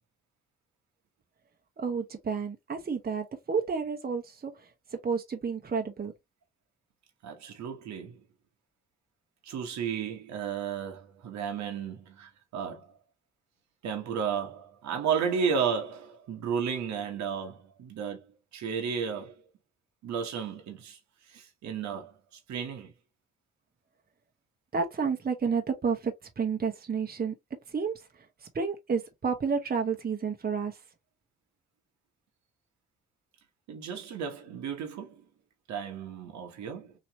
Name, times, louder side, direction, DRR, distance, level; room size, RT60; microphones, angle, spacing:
voice 1, 1.8-4.7 5.0-6.1 24.7-27.3 27.7-28.0 28.5-30.8, right 5 dB, 30° right, 1.0 m, -30 dB
voice 2, 7.2-8.2 9.4-13.0 13.8-18.3 18.5-19.3 20.0-21.0 21.3-22.1 22.5-22.9 33.7-35.2 35.7-36.9, right 7 dB, 70° right, 1.1 m, -33 dB
3.1 x 2.9 x 2.7 m
supercardioid pair, 55°, 30 cm